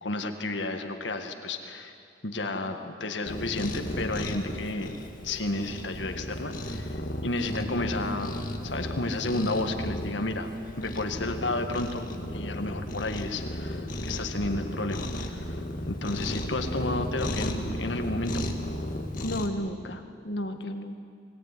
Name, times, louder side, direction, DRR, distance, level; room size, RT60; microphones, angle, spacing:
voice 1, 0.0-1.9 2.2-5.0 5.2-8.4 8.6-10.5 10.8-12.1 12.3-15.6 15.9-18.4, left 2 dB, 90° left, 5 dB, 1.8 m, -32 dB
Cat, 3.3-19.5, left 1 dB, 50° left, 1.9 m, -34 dB
voice 2, 19.2-21.0, equal, 70° left, 6 dB, 1.7 m, -33 dB
22.5 x 18.0 x 9.9 m, 2.3 s
head